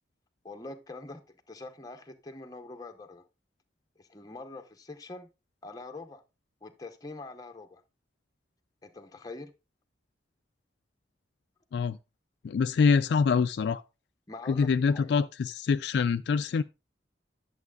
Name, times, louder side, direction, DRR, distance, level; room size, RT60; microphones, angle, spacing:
voice 1, 0.4-1.2 1.5-3.2 4.0-5.3 5.6-6.2 6.6-7.8 8.8-9.5 14.3-15.2, left 2 dB, 20° left, 0.8 m, -44 dB
voice 2, 12.4-13.8 14.5-16.6, left 5 dB, 60° left, 0.3 m, -25 dB
11.0 x 7.1 x 2.3 m
head